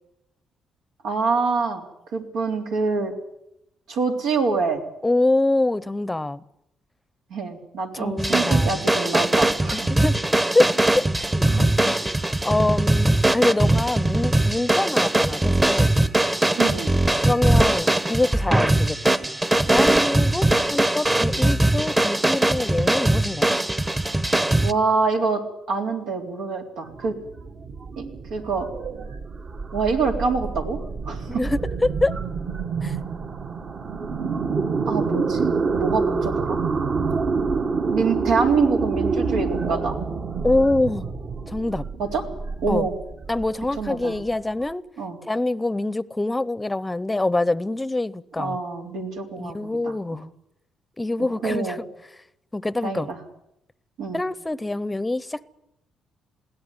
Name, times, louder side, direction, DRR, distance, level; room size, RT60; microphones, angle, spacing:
voice 1, 1.0-1.8 2.1-3.1 3.9-4.8 7.3-9.9 11.5-11.7 16.6-16.9 24.6-25.4 25.7-27.2 28.0-28.7 29.7-30.8 31.1-31.4 34.9-36.6 37.9-40.0 42.0-42.2 42.6-42.9 43.8-44.2 45.0-45.2 48.4-50.2 51.2-51.8 52.8-53.2 54.0-54.2, right 4 dB, 90° right, 2 dB, 3.7 m, -25 dB
voice 2, 5.0-6.4 7.9-8.8 9.7-11.0 11.3-11.5 11.8-12.2 12.4-15.9 17.2-19.2 19.6-23.5 31.3-32.1 32.8-33.0 40.4-41.1 41.5-41.9 42.7-42.9 43.3-44.8 45.2-48.6 49.4-50.3 51.0-51.8 52.5-53.1 54.1-55.5, left 2 dB, 15° left, 19 dB, 0.7 m, -25 dB
sound 1, 8.2-24.7, right 1 dB, 15° right, 1.0 m, -21 dB
sound 2, 26.8-44.6, right 4 dB, 55° right, 2.0 m, -27 dB
21.5 x 16.5 x 9.7 m, 0.83 s
cardioid pair, 90°, 0 cm